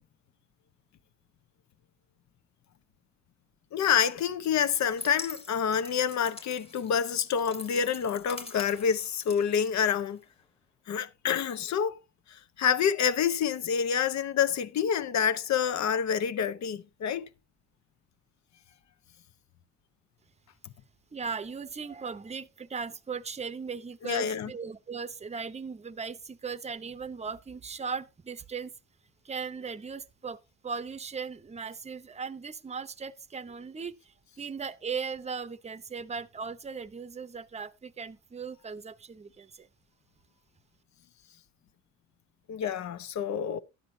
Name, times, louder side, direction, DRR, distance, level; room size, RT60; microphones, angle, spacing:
voice 1, 3.7-10.2 10.9-12.0 12.3-17.3 24.0-24.5 42.5-43.6, left 7 dB, 65° left, 0.9 m, -27 dB
sound 1, 4.7-10.4, left 2 dB, 20° left, 1.5 m, -45 dB
voice 2, 21.1-28.7 29.2-39.7, right 5 dB, 20° right, 0.7 m, -38 dB
12.0 x 9.7 x 2.6 m
cardioid pair, 90°, 30 cm